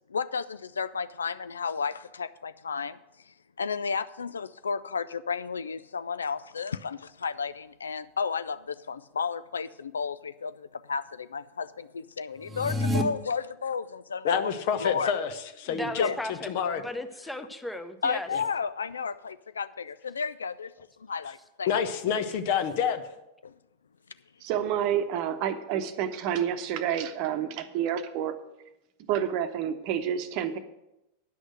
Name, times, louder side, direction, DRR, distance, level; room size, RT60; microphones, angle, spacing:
voice 1, 0.1-3.0 3.6-14.5 14.8-15.1 16.0-16.2 18.0-20.7 21.1-21.9 23.4-23.5, left 5 dB, 70° left, 15 dB, 0.3 m, -32 dB
sound 1, 12.4-13.0, left 1 dB, 15° right, 1.1 m, -27 dB
voice 2, 14.2-16.8 18.3-18.4 21.7-23.0, left 7 dB, 50° left, 10 dB, 0.9 m, -28 dB
voice 3, 15.6-16.5 16.8-18.3, left 1 dB, 5° left, 9 dB, 0.8 m, -36 dB
voice 4, 24.4-28.3 29.0-30.6, right 9 dB, 45° right, 9 dB, 0.9 m, -29 dB
10.0 x 6.3 x 7.8 m, 0.92 s
figure-of-eight pair, 90°, 0 cm